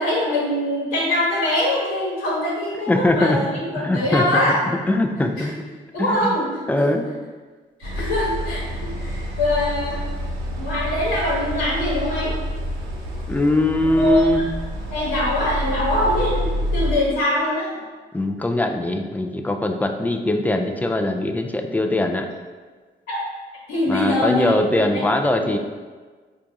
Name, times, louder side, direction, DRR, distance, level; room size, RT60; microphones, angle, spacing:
voice 1, 0.0-4.6 5.4-5.6 5.9-6.5 6.8-6.9 7.8-10.0 10.6-12.3 13.9-14.4 14.9-17.7 23.1-23.2 23.7-24.5 25.4-25.5, left 1 dB, 75° left, -6 dB, 1.0 m, -23 dB
voice 2, 2.9-3.5 3.8-4.4 4.9-5.5 6.0-6.3 6.7-7.1 13.3-14.5 18.1-22.3 23.9-25.6, left 1 dB, 10° left, 4 dB, 0.3 m, -21 dB
sound 1, 7.8-17.0, equal, 90° right, 0.6 m, -28 dB
4.4 x 2.4 x 2.6 m, 1.4 s
supercardioid pair, 60°, 21 cm